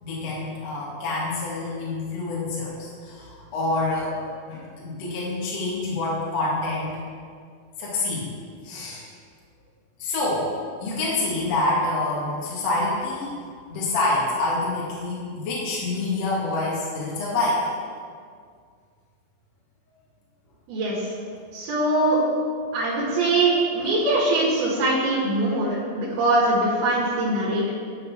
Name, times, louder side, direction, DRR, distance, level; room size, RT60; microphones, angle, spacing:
voice 1, 0.0-4.2 4.5-7.0 7.8-8.3 8.6-9.1 10.0-10.5 10.8-13.3 13.7-17.6, left 2 dB, 50° left, -6 dB, 2.5 m, -27 dB
voice 2, 20.7-21.1 21.5-22.2 22.7-27.7, right 2 dB, 80° right, -6 dB, 3.6 m, -22 dB
11.5 x 6.7 x 4.3 m, 2.1 s
omnidirectional pair, 4.4 m